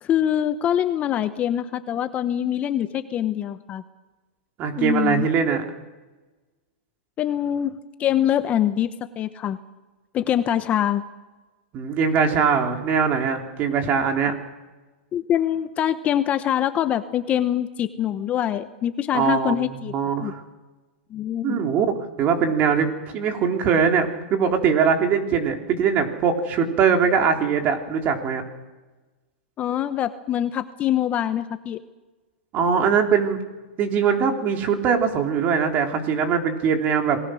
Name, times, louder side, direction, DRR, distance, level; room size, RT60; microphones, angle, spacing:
voice 1, 0.0-3.8 4.8-5.3 7.2-8.9 9.2-9.6 10.1-11.0 15.1-19.9 20.2-20.3 21.1-21.6 29.6-31.8, left 10 dB, 25° left, 11 dB, 1.0 m, -24 dB
voice 2, 4.6-5.6 11.7-14.3 19.1-20.4 21.4-21.9 22.2-28.4 32.5-33.4 33.8-37.2, right 6 dB, 30° right, 4 dB, 3.4 m, -21 dB
27.0 x 19.5 x 6.4 m, 1.2 s
hypercardioid pair, 140°, 6 cm